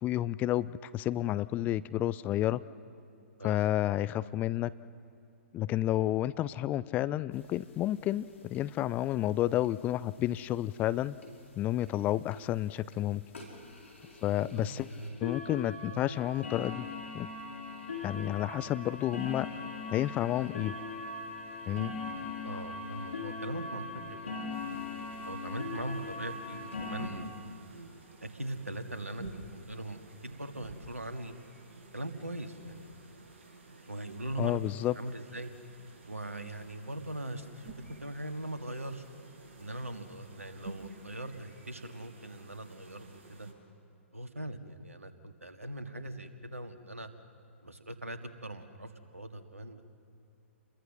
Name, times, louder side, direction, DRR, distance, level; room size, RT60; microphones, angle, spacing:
voice 1, 0.0-2.6 3.4-4.7 5.5-11.2 11.6-13.2 14.2-14.9 15.2-16.9 17.1-17.3 18.0-19.5 19.9-20.7 21.7-21.9 34.4-34.9, left 13 dB, 20° left, 16 dB, 0.5 m, -30 dB
sound 1, 7.4-7.5 7.7-7.8 8.0-8.2 8.5-8.9 9.6-9.7 10.3-10.4 10.7-10.8 11.2-11.3 11.8-11.9 12.3-12.5 12.9-13.0 13.3-27.1, left 3 dB, 70° left, 5.2 m, -40 dB
voice 2, 14.4-15.4 15.9-16.1 22.4-24.4 24.6-24.8 25.3-27.3 28.2-31.3 31.9-32.9 33.9-35.5 36.1-37.7 38.0-39.0 39.6-43.5 44.1-47.1 47.6-49.8, right 1 dB, 85° right, 7 dB, 2.0 m, -41 dB
sound 2, 24.5-43.5, right 3 dB, 55° right, 5.5 m, -52 dB
28.5 x 22.0 x 6.7 m, 2.5 s
figure-of-eight pair, 120°, 7 cm